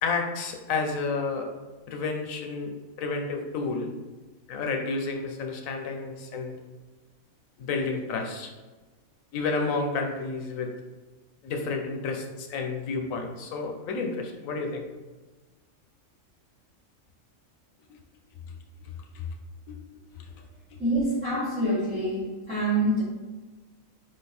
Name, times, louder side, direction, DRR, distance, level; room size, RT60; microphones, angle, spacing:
voice 1, 0.0-1.5 1.9-2.7 3.0-3.9 4.5-6.5 7.6-8.5 9.3-10.7 11.4-14.9 17.9-18.0 19.1-19.3 19.7-19.8, left 4 dB, 80° left, 3 dB, 1.1 m, -30 dB
voice 2, 20.8-23.0, right 1 dB, 5° left, -7 dB, 0.9 m, -26 dB
3.8 x 3.2 x 4.2 m, 1.2 s
omnidirectional pair, 1.4 m